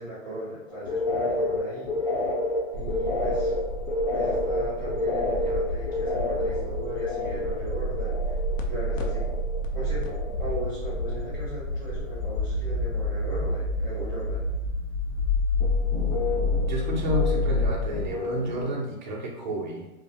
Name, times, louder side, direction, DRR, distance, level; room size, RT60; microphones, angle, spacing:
voice 1, 0.0-2.1 2.7-3.5 4.1-8.4 8.7-9.3 9.7-14.4, right 1 dB, 15° left, -11 dB, 0.4 m, -37 dB
sound 1, 0.7-9.6 9.9-10.6 10.9-11.6 11.9-12.3 15.6-18.8, left 2 dB, 45° left, 0.8 m, -30 dB
sound 2, 2.7-18.1, left 2 dB, 70° left, 0.6 m, -29 dB
voice 2, 16.7-19.9, right 1 dB, 35° right, -2 dB, 0.5 m, -31 dB
2.5 x 2.1 x 2.7 m, 0.99 s
hypercardioid pair, 160°, 40 cm